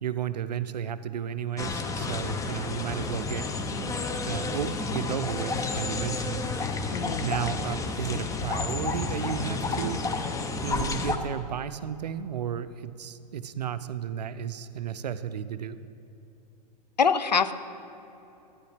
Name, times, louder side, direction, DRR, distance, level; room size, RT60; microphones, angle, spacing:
voice 1, 0.0-3.5 4.2-6.4 7.2-10.0 10.6-15.8, right 9 dB, 75° right, 13 dB, 0.5 m, -33 dB
sound 1, 1.6-11.2, left 4 dB, 15° left, 0.7 m, -31 dB
voice 2, 17.0-17.5, left 6 dB, 90° left, 13 dB, 0.5 m, -24 dB
11.5 x 9.7 x 3.4 m, 2.9 s
figure-of-eight pair, 100°, 21 cm